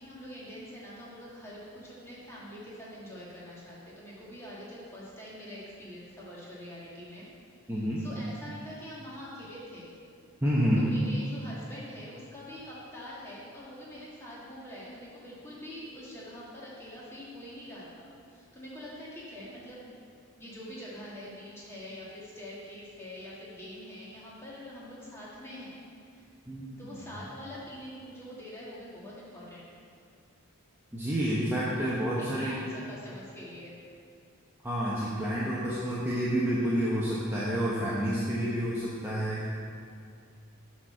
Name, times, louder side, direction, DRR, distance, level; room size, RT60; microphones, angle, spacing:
voice 1, 0.0-7.3 7.6-7.7 8.0-9.9 10.8-19.9 20.4-26.2 26.8-29.6 31.8-33.7, equal, 10° left, -7 dB, 1.8 m, -45 dB
voice 2, 7.7-8.0 10.4-10.8 26.5-27.1 30.9-32.6 34.6-39.5, equal, 10° right, -8 dB, 0.9 m, -29 dB
8.2 x 4.4 x 6.3 m, 2.3 s
head